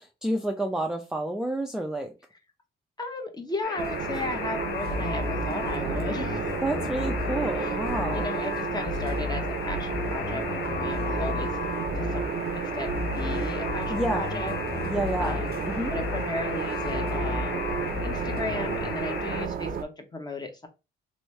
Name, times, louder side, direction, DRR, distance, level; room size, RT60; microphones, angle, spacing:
voice 1, 0.0-2.1 6.6-8.3 13.9-14.4 14.9-15.4 15.7-15.9, right 1 dB, 5° right, 0.5 m, -29 dB
voice 2, 3.0-6.5 7.6-7.7 8.1-11.5 12.0-14.5 14.8-15.6 15.9-17.7 18.0-20.7, left 2 dB, 20° left, 1.0 m, -35 dB
Alarm, 3.6-19.5, left 6 dB, 80° left, 0.7 m, -36 dB
sound 1, 3.8-19.8, right 6 dB, 50° right, 0.6 m, -32 dB
sound 2, 4.9-8.4 8.9-12.4 12.9-16.4 16.9-18.9, left 4 dB, 40° left, 1.1 m, -34 dB
3.1 x 2.7 x 3.1 m
cardioid pair, 90°, 20 cm